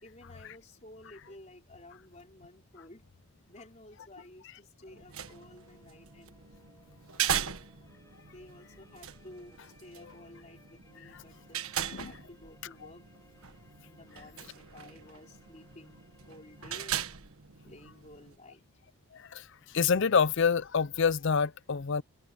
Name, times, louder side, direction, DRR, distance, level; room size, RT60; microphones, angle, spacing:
voice 1, 0.0-3.0 3.5-6.4 7.3-7.6 8.3-13.1 13.8-17.1 17.6-18.6, left 1 dB, 30° left, 4.5 m, -53 dB
sound 1, 4.9-18.4, right 9 dB, 70° right, 1.4 m, -39 dB
sound 2, 5.3-16.8, left 2 dB, 15° left, 6.9 m, -64 dB
voice 2, 19.7-22.0, left 6 dB, 55° left, 0.5 m, -26 dB
head